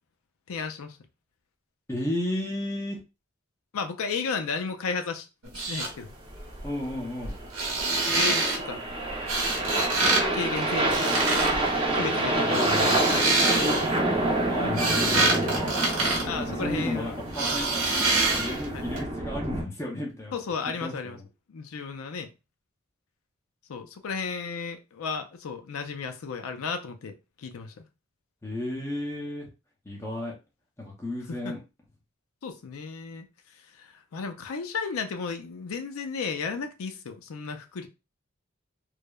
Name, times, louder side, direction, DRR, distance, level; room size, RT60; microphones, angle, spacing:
voice 1, 0.5-1.0 3.7-5.3 5.5-6.1 8.1-8.8 10.3-11.3 11.9-13.7 16.2-17.2 17.7-17.8 18.7-19.0 20.3-21.2 21.5-22.3 23.7-27.8 31.3-31.5 32.4-33.3 33.7-37.9, left 5 dB, 85° left, 0.4 m, -34 dB
voice 2, 1.9-3.0 6.6-7.4 12.3-13.0 14.5-15.7 16.4-18.1 18.3-20.3 20.8-21.2 28.4-29.5 29.9-30.3 30.8-31.6, left 1 dB, 15° left, 0.6 m, -33 dB
sound 1, 5.4-5.9 7.4-8.6 9.3-10.2 10.5-11.5 12.3-14.0 14.5-16.9 17.3-18.7 19.0-19.1, right 2 dB, 80° right, 0.8 m, -26 dB
sound 2, 6.3-19.6, right 1 dB, 25° right, 0.7 m, -28 dB
3.1 x 2.0 x 2.3 m
head